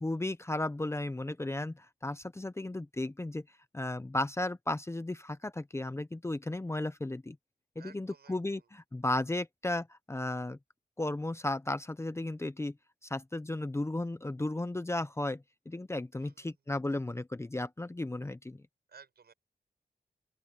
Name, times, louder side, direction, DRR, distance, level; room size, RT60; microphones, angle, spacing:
voice 1, 0.0-3.4 3.7-7.4 7.8-10.6 11.0-12.7 13.1-18.6, left 2 dB, 15° left, 0.7 m, -34 dB
voice 2, 7.8-8.7 16.2-16.6 18.9-19.3, right 6 dB, 70° right, 6.4 m, -57 dB
open air
wide cardioid pair, 150°, 17 cm